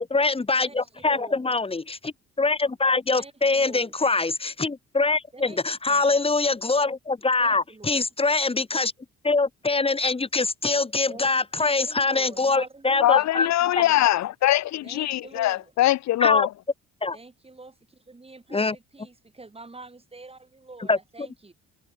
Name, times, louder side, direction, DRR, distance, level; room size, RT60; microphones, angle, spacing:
voice 1, 0.0-8.9 9.2-13.5 16.2-16.5 17.0-17.2 18.5-18.8 20.9-21.3, left 3 dB, 20° left, 1.3 m, -24 dB
voice 2, 0.6-1.5 3.1-3.9 5.3-5.6 5.9-6.1 7.4-8.0 11.1-14.0 14.8-15.7 17.1-21.5, right 3 dB, 20° right, 4.6 m, -46 dB
voice 3, 13.0-16.5, left 14 dB, 65° left, 0.6 m, -22 dB
cardioid pair, 90°, 30 cm